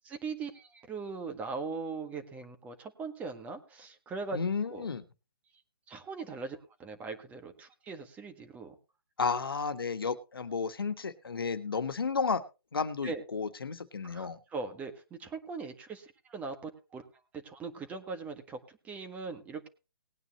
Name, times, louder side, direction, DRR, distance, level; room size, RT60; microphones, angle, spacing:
voice 1, 0.0-4.4 4.7-4.9 5.9-8.7 13.0-13.2 14.0-17.0 17.3-19.7, right 4 dB, 10° right, 7 dB, 1.6 m, -40 dB
voice 2, 4.3-5.0 9.2-12.4 12.7-14.4, left 5 dB, 80° left, 9 dB, 1.5 m, -32 dB
19.5 x 9.3 x 3.0 m, 0.30 s
hypercardioid pair, 145°, 12 cm